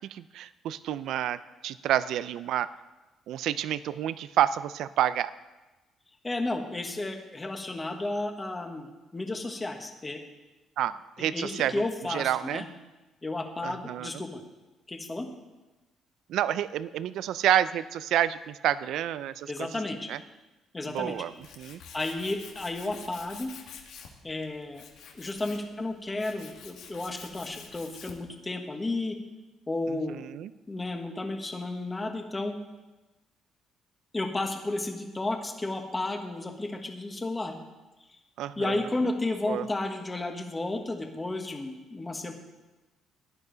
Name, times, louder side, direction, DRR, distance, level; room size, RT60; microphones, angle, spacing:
voice 1, 0.1-2.7 3.3-5.3 10.8-11.7 12.1-12.6 13.6-14.2 16.3-19.7 20.1-20.2 20.9-21.8 29.9-30.5 38.4-38.8 39.5-39.6, right 11 dB, 70° right, 15 dB, 0.4 m, -29 dB
voice 2, 6.2-10.2 11.2-12.6 13.2-14.4 14.9-15.3 19.5-20.1 20.7-21.2 21.9-23.5 24.2-24.8 25.1-29.2 29.7-30.2 30.7-32.6 34.1-37.6 38.6-42.3, left 2 dB, 15° left, 4 dB, 1.3 m, -32 dB
Tools, 20.9-28.3, left 6 dB, 75° left, 1.6 m, -49 dB
15.5 x 11.0 x 4.0 m, 1.1 s
cardioid pair, 145°, 0 cm